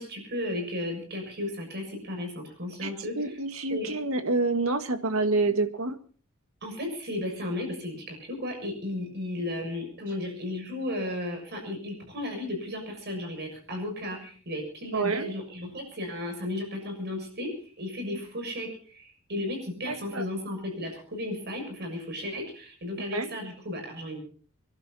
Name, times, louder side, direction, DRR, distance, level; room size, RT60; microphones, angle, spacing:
voice 1, 0.0-3.2 3.7-4.0 6.6-17.5 17.8-24.2, left 1 dB, 50° right, 3 dB, 6.6 m, -34 dB
voice 2, 3.2-6.0 14.9-15.3 19.9-20.2 23.1-23.3, right 3 dB, 80° right, 8 dB, 1.8 m, -27 dB
27.0 x 12.0 x 4.2 m, 0.42 s
head